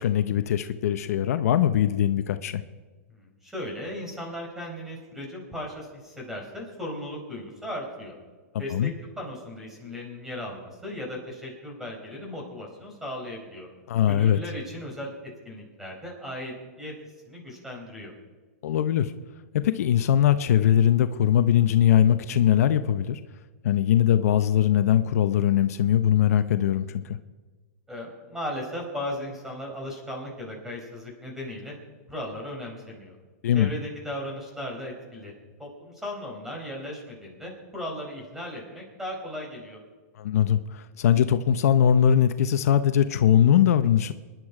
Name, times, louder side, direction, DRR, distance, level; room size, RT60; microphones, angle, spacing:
voice 1, 0.0-2.6 8.7-8.9 13.9-14.4 18.6-19.1 19.5-23.2 23.6-27.2 33.4-33.7 40.2-44.1, left 10 dB, 70° left, 11 dB, 0.8 m, -21 dB
voice 2, 3.1-8.2 8.6-8.9 9.2-13.7 14.1-15.1 15.4-16.9 17.3-18.1 27.9-31.7 32.1-33.1 33.5-35.3 35.6-39.8, left 1 dB, 5° right, 0 dB, 4.9 m, -36 dB
25.5 x 11.0 x 4.9 m, 1.3 s
hypercardioid pair, 140°, 9 cm